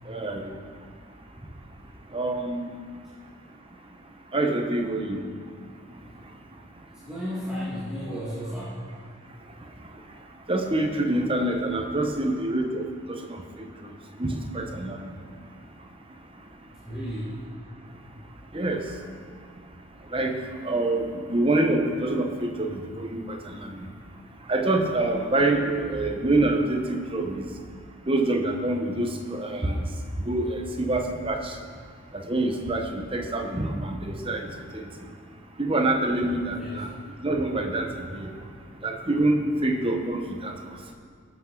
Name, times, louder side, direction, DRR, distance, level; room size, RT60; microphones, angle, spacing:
voice 1, 0.0-0.5 2.1-2.7 4.3-5.3 10.5-13.9 14.2-15.1 18.5-18.8 20.1-20.3 20.6-23.9 24.5-27.5 28.1-29.8 30.3-31.6 32.1-34.9 35.6-36.9 37.2-38.3 38.8-40.5, right 2 dB, 25° right, 4 dB, 1.0 m, -26 dB
voice 2, 6.9-8.8 16.8-17.4 36.5-36.8, equal, 5° right, -10 dB, 1.9 m, -33 dB
20.0 x 8.2 x 3.9 m, 2.1 s
head